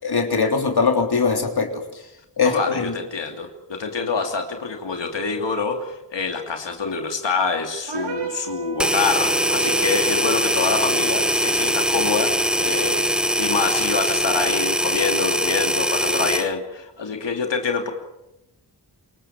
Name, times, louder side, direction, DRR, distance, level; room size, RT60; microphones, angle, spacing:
voice 1, 0.0-1.8 2.4-2.9, left 4 dB, 60° left, 4 dB, 3.5 m, -21 dB
voice 2, 2.4-17.9, left 5 dB, 85° left, 4 dB, 2.9 m, -26 dB
sound 1, 7.9-10.1, right 7 dB, 80° right, 5.5 m, -32 dB
sound 2, 8.8-16.5, equal, ahead, 0.8 m, -22 dB
27.0 x 23.0 x 7.5 m, 0.89 s
wide cardioid pair, 85°, 42 cm